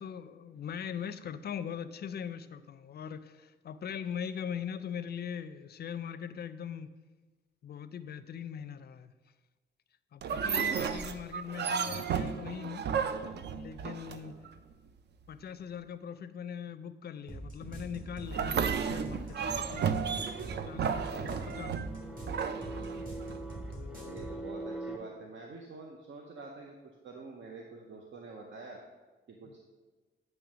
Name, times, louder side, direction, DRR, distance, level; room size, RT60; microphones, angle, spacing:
voice 1, 0.0-6.9 7.6-9.1 10.1-12.9 13.6-14.4 15.3-20.0 20.7-22.1 23.7-24.2 29.5-29.6, left 8 dB, 55° left, 12 dB, 0.4 m, -41 dB
sound 1, 10.2-14.5 18.3-23.4, right 7 dB, 60° right, 0.4 m, -33 dB
sound 2, 17.3-24.4, right 1 dB, 45° right, 1.9 m, -43 dB
sound 3, 19.0-25.0, right 2 dB, 5° right, 0.5 m, -44 dB
voice 2, 21.2-21.6 23.9-28.8 29.3-29.6, right 3 dB, 75° right, 1 dB, 0.8 m, -47 dB
8.8 x 3.2 x 6.1 m, 1.3 s
wide cardioid pair, 165°, 19 cm